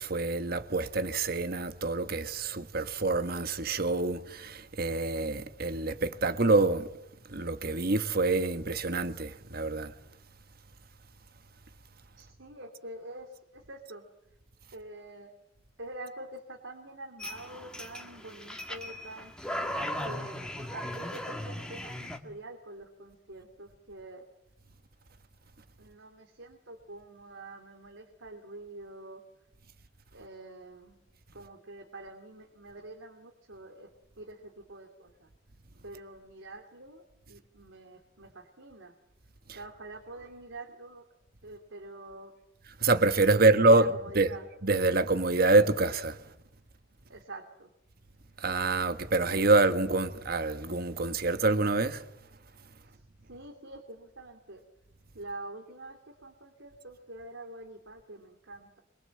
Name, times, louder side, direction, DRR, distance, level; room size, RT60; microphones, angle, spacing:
voice 1, 0.0-6.9 7.3-9.9 42.8-43.9 44.1-44.3 44.6-46.2 48.4-52.0, right 3 dB, 50° right, 1.4 m, -26 dB
voice 2, 12.2-14.1 14.7-15.3 15.8-19.3 20.0-24.2 25.8-29.2 30.1-31.0 31.3-33.9 34.2-35.3 35.8-39.0 39.5-41.0 41.4-42.3 43.3-44.5 47.1-47.7 52.8-54.6 55.1-58.8, right 2 dB, 85° right, 2.8 m, -46 dB
sound 1, 17.2-22.2, left 1 dB, 5° left, 1.9 m, -37 dB
25.5 x 23.0 x 7.8 m
head